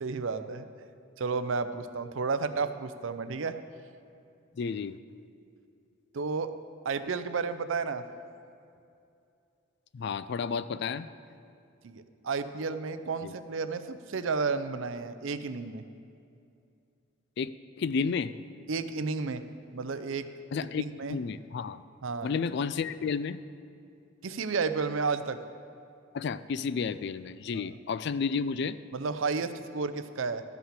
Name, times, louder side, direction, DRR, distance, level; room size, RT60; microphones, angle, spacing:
voice 1, 0.0-0.7 1.2-3.6 6.1-6.5 6.8-8.0 11.8-15.8 18.7-19.4 19.7-20.3 20.8-21.2 22.0-22.3 24.2-25.4 27.5-27.6 28.9-30.4, right 4 dB, 70° right, 11 dB, 0.5 m, -32 dB
voice 2, 4.6-5.0 9.9-11.1 13.2-13.3 17.4-17.5 17.8-18.3 20.5-20.8 21.1-21.8 22.2-23.4 26.1-28.8, left 5 dB, 55° left, 15 dB, 0.3 m, -31 dB
12.5 x 5.8 x 7.4 m, 2.5 s
head